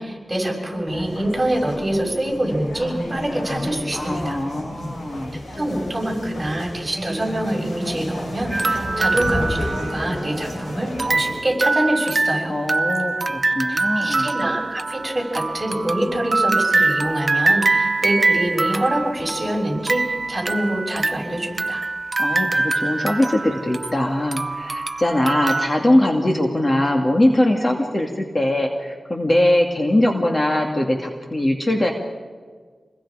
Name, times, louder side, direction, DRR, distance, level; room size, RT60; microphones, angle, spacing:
voice 1, 0.0-4.4 5.3-12.6 13.7-21.8, right 1 dB, 20° right, 0 dB, 6.6 m, -25 dB
sound 1, 0.9-11.4, left 1 dB, 85° left, 7.2 m, -31 dB
voice 2, 4.0-5.3 12.5-14.3 22.2-31.9, left 1 dB, 35° left, 2 dB, 2.5 m, -21 dB
sound 2, 8.5-10.5 11.0-25.7, right 3 dB, 45° right, 0.7 m, -23 dB
27.5 x 21.0 x 5.1 m, 1.5 s
wide cardioid pair, 65°, 0 cm